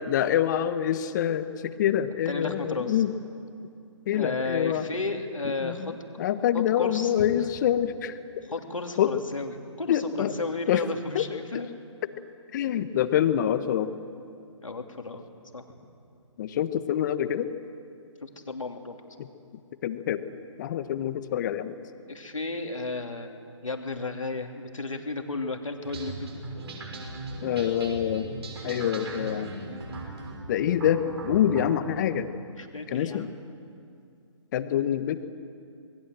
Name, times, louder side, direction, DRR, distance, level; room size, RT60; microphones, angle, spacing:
voice 1, 0.1-3.1 4.1-4.8 5.6-5.9 6.2-8.2 9.0-9.1 9.9-10.3 10.7-10.8 11.1-11.3 12.5-13.9 16.4-17.5 19.8-20.2 20.6-21.7 27.4-28.4 28.6-29.5 30.5-32.3 32.9-33.3 34.5-35.2, left 10 dB, 35° left, 11 dB, 1.3 m, -26 dB
voice 2, 2.2-3.0 4.1-5.9 6.5-7.3 8.5-11.7 14.6-15.2 15.5-15.6 18.2-19.2 22.1-26.3 32.6-33.3, left 3 dB, 85° left, 4 dB, 2.9 m, -33 dB
sound 1, 25.8-31.7, right 3 dB, 55° right, 6.2 m, -38 dB
26.5 x 21.0 x 7.8 m, 2.4 s
figure-of-eight pair, 140°, 16 cm